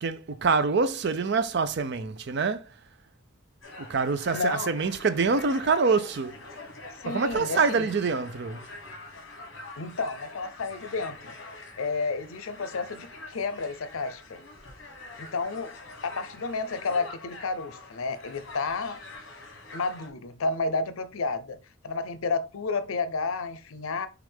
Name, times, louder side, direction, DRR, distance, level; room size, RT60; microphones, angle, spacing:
voice 1, 0.0-2.7 3.9-6.4 7.1-8.6, right 4 dB, 55° right, 0.5 m, -25 dB
sound 1, 3.6-20.1, left 2 dB, 60° left, 1.3 m, -45 dB
voice 2, 4.3-4.8 7.0-7.9 9.8-11.3 11.8-14.4 15.2-15.7 16.0-19.0 19.7-21.6 21.8-24.1, left 4 dB, 85° left, 0.6 m, -31 dB
6.3 x 2.5 x 3.4 m
head